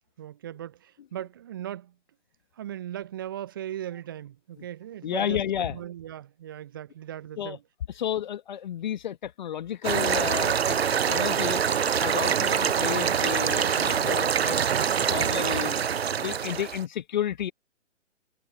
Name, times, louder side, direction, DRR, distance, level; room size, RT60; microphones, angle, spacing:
voice 1, 0.2-2.0 2.6-7.6, right 11 dB, 20° right, 0.6 m, -38 dB
voice 2, 5.0-5.8 7.4-7.6 8.0-11.6 12.0-15.8 16.2-17.5, left 10 dB, 40° left, 1.4 m, -32 dB
sound 1, 9.8-16.8, right 7 dB, 55° right, 0.8 m, -25 dB
figure-of-eight pair, 135°, 37 cm